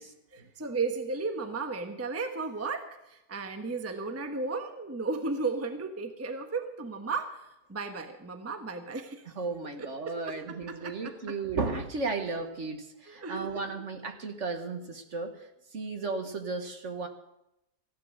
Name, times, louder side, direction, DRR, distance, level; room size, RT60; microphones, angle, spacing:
voice 1, 0.3-9.2 9.8-9.9 10.5-11.4 13.1-13.7, right 4 dB, 10° right, 6 dB, 0.9 m, -34 dB
voice 2, 9.4-17.1, right 4 dB, 50° right, 6 dB, 1.5 m, -35 dB
15.0 x 11.0 x 6.5 m, 0.87 s
omnidirectional pair, 1.7 m